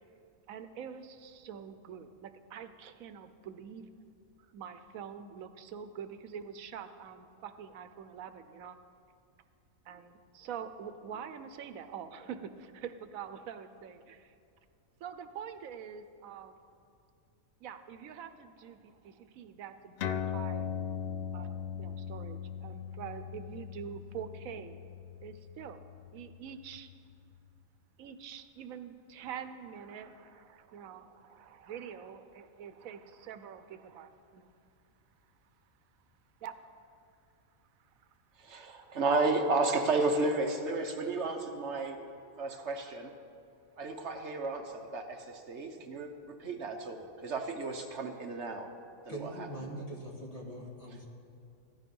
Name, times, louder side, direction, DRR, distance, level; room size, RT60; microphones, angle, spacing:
voice 1, 0.5-3.9 4.5-8.8 9.8-14.3 15.0-16.6 17.6-20.7 21.3-24.8 25.2-26.9 28.0-34.5 36.4-36.7 37.8-38.1 38.8-39.0 42.3-42.9, right 8 dB, 90° right, 10 dB, 1.1 m, -45 dB
sound 1, 20.0-26.9, left 8 dB, 65° left, 0.6 m, -39 dB
voice 2, 38.4-42.0 42.4-43.1 43.8-48.7 49.0-49.5, right 3 dB, 60° right, 5 dB, 1.2 m, -32 dB
voice 3, 49.1-51.0, right 1 dB, 25° left, -1 dB, 1.7 m, -42 dB
15.0 x 11.5 x 5.4 m, 2.4 s
omnidirectional pair, 1.4 m